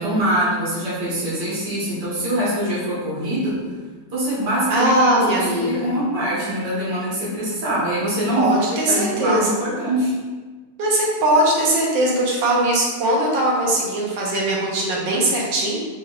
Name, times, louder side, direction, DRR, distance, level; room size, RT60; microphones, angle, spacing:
voice 1, 0.0-3.6 4.1-10.1, right 1 dB, 70° right, -8 dB, 2.0 m, -23 dB
voice 2, 4.7-5.9 8.4-9.6 10.8-15.8, right 1 dB, 85° right, -3 dB, 1.6 m, -20 dB
6.1 x 3.0 x 2.4 m, 1.3 s
omnidirectional pair, 1.9 m